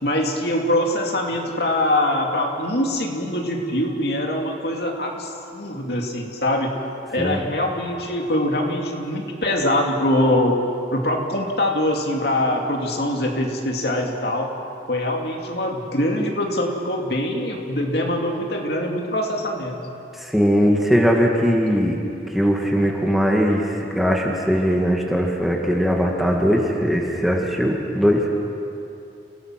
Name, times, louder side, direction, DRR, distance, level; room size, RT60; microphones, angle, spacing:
voice 1, 0.0-6.7 7.1-10.6 10.9-14.5 14.9-19.8, left 1 dB, 65° left, 1 dB, 2.6 m, -23 dB
voice 2, 20.2-22.0 22.3-28.3, equal, ahead, -1 dB, 1.9 m, -20 dB
29.5 x 17.5 x 6.0 m, 2.7 s
head